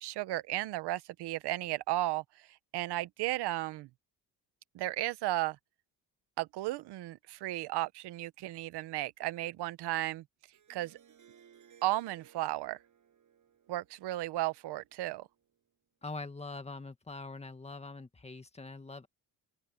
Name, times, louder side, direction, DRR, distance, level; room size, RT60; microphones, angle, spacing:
voice 1, 0.0-2.5 2.7-3.9 4.7-5.6 6.4-10.2 10.7-11.0 11.8-12.8 13.7-15.3, right 16 dB, 85° right, 1.0 m, -34 dB
Harp, 10.5-15.5, right 8 dB, 50° right, 6.9 m, -62 dB
voice 2, 16.0-19.1, left 3 dB, 15° left, 2.0 m, -43 dB
open air
cardioid pair, 110°, 39 cm